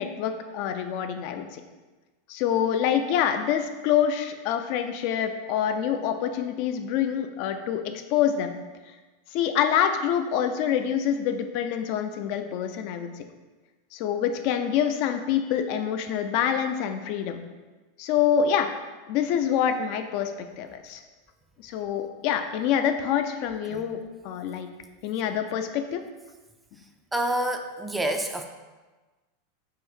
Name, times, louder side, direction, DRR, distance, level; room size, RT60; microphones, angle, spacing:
voice 1, 0.0-1.6 2.3-7.8 8.1-8.6 9.3-13.1 13.9-17.4 18.0-18.7 19.1-21.0 21.6-24.0 24.2-24.7 25.0-26.0, left 9 dB, 55° left, 7 dB, 0.4 m, -26 dB
voice 2, 27.1-28.5, right 1 dB, 10° right, 4 dB, 0.4 m, -28 dB
3.7 x 2.6 x 4.6 m, 1.2 s
hypercardioid pair, 95°, 0 cm